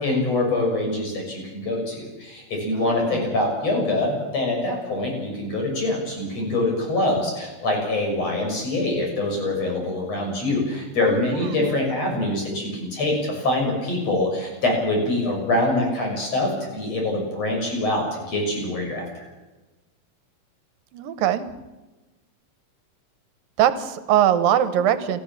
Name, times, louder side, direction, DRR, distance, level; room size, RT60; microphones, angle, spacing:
voice 1, 0.0-19.0, left 2 dB, 45° left, 1 dB, 7.5 m, -24 dB
voice 2, 2.7-3.2 11.0-11.8 20.9-21.5 23.6-25.2, right 10 dB, 80° right, 12 dB, 2.9 m, -22 dB
29.0 x 14.5 x 7.4 m, 1.1 s
omnidirectional pair, 4.1 m